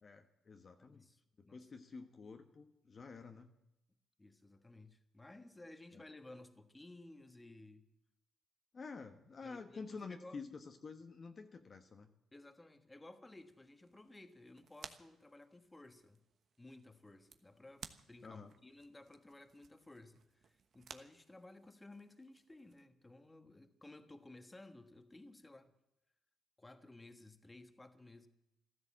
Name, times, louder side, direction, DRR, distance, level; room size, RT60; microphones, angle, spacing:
voice 1, 0.0-1.1 1.4-3.5 5.9-6.0 8.7-12.1 18.2-18.5, left 4 dB, 40° left, 5 dB, 1.2 m, -50 dB
voice 2, 0.8-1.7 4.2-7.9 9.4-10.4 12.3-16.2 16.6-25.7 26.6-28.3, left 2 dB, 15° left, 8 dB, 1.5 m, -57 dB
sound 1, 13.3-22.9, right 6 dB, 55° right, 1.2 m, -59 dB
14.5 x 13.0 x 7.4 m, 0.86 s
cardioid pair, 90°, 0 cm